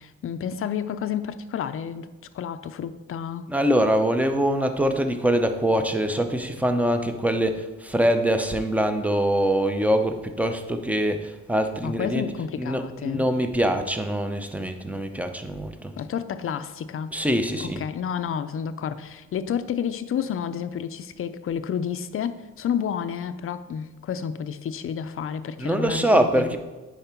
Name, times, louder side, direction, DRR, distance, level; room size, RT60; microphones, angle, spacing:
voice 1, 0.0-2.1 2.3-3.5 11.8-13.3 16.0-17.2 17.6-26.6, left 8 dB, 45° left, 12 dB, 0.5 m, -30 dB
voice 2, 3.5-12.3 12.6-15.9 17.1-17.8 25.6-26.6, right 1 dB, 5° right, 7 dB, 0.6 m, -24 dB
8.9 x 5.0 x 4.4 m, 1.2 s
cardioid pair, 125°, 31 cm